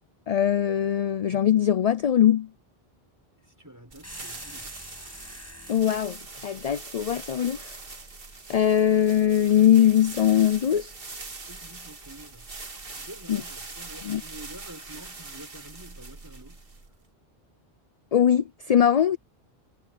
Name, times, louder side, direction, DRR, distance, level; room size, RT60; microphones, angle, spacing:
voice 1, 0.3-2.5 5.7-6.2 6.4-7.8 8.5-10.9 13.3-13.4 14.0-14.2 18.1-19.2, left 10 dB, 50° left, 0.5 m, -21 dB
voice 2, 3.4-4.8 11.5-16.6, right 1 dB, 20° right, 6.1 m, -48 dB
sound 1, 3.9-17.0, right 3 dB, 65° right, 2.2 m, -42 dB
sound 2, 4.0-5.9, equal, 15° left, 6.8 m, -44 dB
omnidirectional pair, 1.0 m